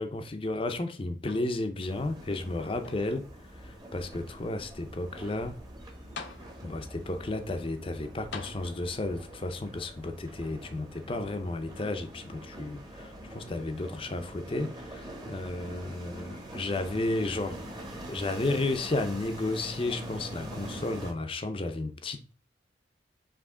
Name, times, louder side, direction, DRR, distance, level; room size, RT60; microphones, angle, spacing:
voice 1, 0.0-3.2 3.6-5.6 6.6-17.6 18.1-22.3, left 2 dB, 30° left, 0.5 m, -33 dB
sound 1, 1.2-1.9 2.3-3.3 4.0-4.1 5.7-5.8 6.1-6.9 8.3-9.2 10.2-10.3, left 4 dB, 70° left, 0.7 m, -45 dB
sound 2, 1.8-21.1, right 1 dB, 20° right, 0.9 m, -44 dB
4.9 x 3.0 x 3.6 m
head